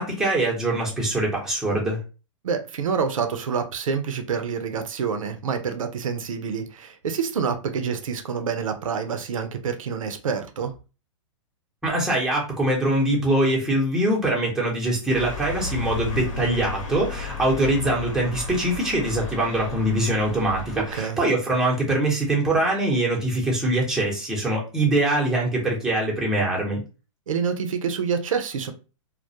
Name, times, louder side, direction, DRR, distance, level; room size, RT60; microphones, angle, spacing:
voice 1, 0.0-2.0 11.8-26.8, right 1 dB, 5° right, -4 dB, 0.8 m, -23 dB
voice 2, 2.4-10.7 20.9-21.2 27.3-28.7, right 6 dB, 85° right, 7 dB, 0.5 m, -27 dB
sound 1, 15.1-21.0, left 3 dB, 75° left, 1.0 m, -33 dB
2.2 x 2.1 x 2.7 m, 0.32 s
hypercardioid pair, 130°, 17 cm